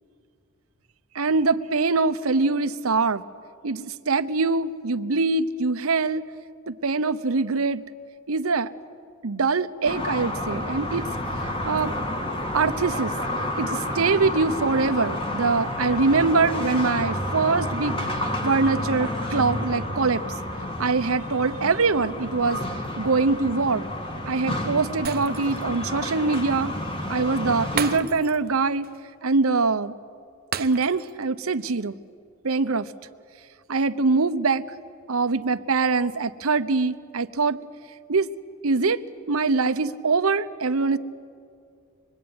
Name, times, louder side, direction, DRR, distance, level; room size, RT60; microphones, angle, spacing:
voice 1, 1.1-3.2 3.6-6.2 6.7-7.8 8.3-8.7 9.2-11.1 11.4-12.0 12.5-13.1 13.6-20.2 20.8-22.6 23.0-23.8 24.3-26.7 27.1-28.9 29.2-30.0 30.6-31.9 32.4-32.9 33.7-34.6 35.1-37.6 38.1-38.3 38.6-39.0 39.3-41.0, right 4 dB, 75° right, 11 dB, 0.9 m, -23 dB
sound 1, 9.8-28.0, left 1 dB, 25° left, 1.9 m, -30 dB
Shatter, 25.0-25.7 26.1-26.2 27.8-28.5 28.8-29.0 30.5-31.2 31.6-31.7, right 7 dB, 45° right, 0.8 m, -33 dB
25.5 x 21.5 x 9.6 m, 2.3 s
head